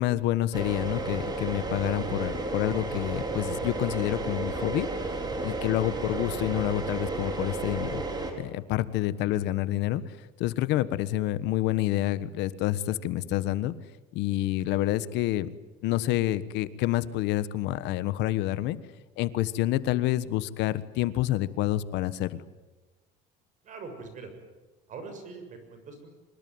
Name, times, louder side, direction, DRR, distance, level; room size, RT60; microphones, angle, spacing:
voice 1, 0.0-4.9 5.4-8.0 8.4-10.0 10.4-13.7 14.1-15.5 15.8-18.8 19.2-22.4, left 14 dB, 65° left, 15 dB, 1.4 m, -28 dB
sound 1, 0.5-8.3, right 2 dB, 20° right, 4.5 m, -32 dB
voice 2, 23.6-24.3 24.9-26.1, right 4 dB, 40° right, 7 dB, 7.0 m, -43 dB
25.5 x 22.0 x 9.5 m, 1.2 s
cardioid pair, 130°, 19 cm